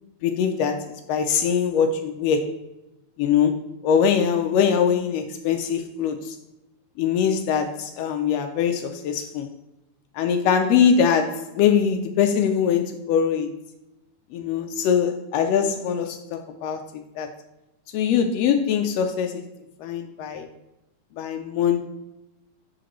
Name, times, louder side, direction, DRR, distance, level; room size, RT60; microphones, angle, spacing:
voice 1, 0.2-2.6 3.2-6.4 7.0-9.5 10.1-13.5 14.3-16.9 17.2-17.3 17.9-19.5 19.8-20.5 21.2-21.8, left 7 dB, 90° left, 6 dB, 1.4 m, -22 dB
6.4 x 5.0 x 3.0 m, 0.93 s
omnidirectional pair, 3.4 m